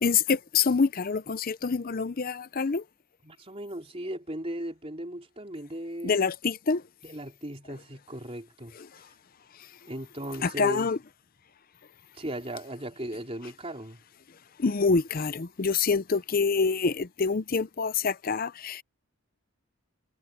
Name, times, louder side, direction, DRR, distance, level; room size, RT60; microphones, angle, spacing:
voice 1, 0.0-2.8 6.0-6.8 8.8-8.9 10.4-11.0 14.6-18.8, left 5 dB, 40° left, 0.5 m, -26 dB
voice 2, 3.2-6.2 7.0-8.8 9.9-10.9 12.1-14.0, right 1 dB, 25° right, 3.8 m, -37 dB
head